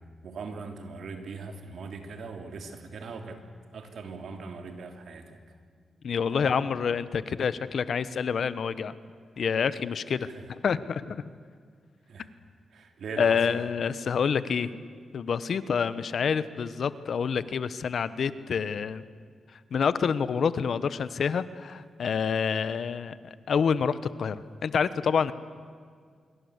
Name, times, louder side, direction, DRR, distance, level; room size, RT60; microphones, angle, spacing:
voice 1, 0.0-3.4 3.7-5.5 6.3-6.6 10.2-10.4 12.1-12.3 12.7-13.4, right 4 dB, 75° right, 5 dB, 3.2 m, -40 dB
voice 2, 6.0-8.9 9.4-11.2 13.2-14.7 15.1-19.0 19.7-25.3, left 6 dB, 70° left, 14 dB, 1.1 m, -27 dB
26.0 x 23.5 x 8.2 m, 2.1 s
cardioid pair, 70°, 0 cm